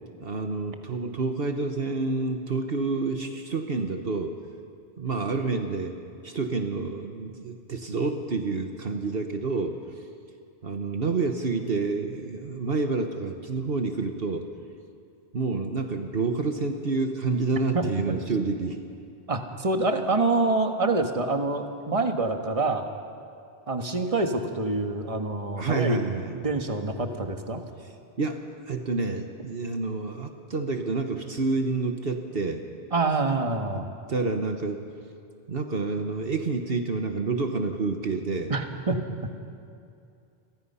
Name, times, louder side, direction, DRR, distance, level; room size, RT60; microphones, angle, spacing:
voice 1, 0.2-4.4 5.0-5.9 6.2-10.0 10.6-14.4 15.3-18.8 25.6-26.3 27.8-27.9 28.2-32.6 33.7-33.8 34.1-34.9 35.5-38.5, right 3 dB, 60° right, 5 dB, 1.4 m, -28 dB
voice 2, 17.7-18.1 19.3-22.9 23.7-26.0 26.3-27.6 32.9-33.9 38.5-39.0, right 3 dB, 30° right, 5 dB, 1.6 m, -26 dB
30.0 x 23.0 x 5.7 m, 2.5 s
omnidirectional pair, 1.1 m